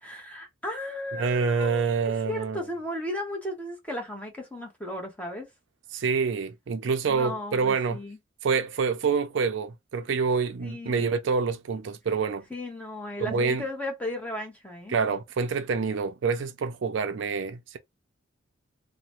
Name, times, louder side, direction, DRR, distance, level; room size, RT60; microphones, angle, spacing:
voice 1, 0.0-5.5 7.1-8.2 10.6-11.2 12.5-14.9, left 1 dB, 5° left, 0.8 m, -35 dB
voice 2, 1.2-2.6 5.9-8.0 8.4-12.4 13.2-13.6 14.9-17.8, right 5 dB, 65° right, 0.4 m, -27 dB
2.9 x 2.1 x 2.9 m
head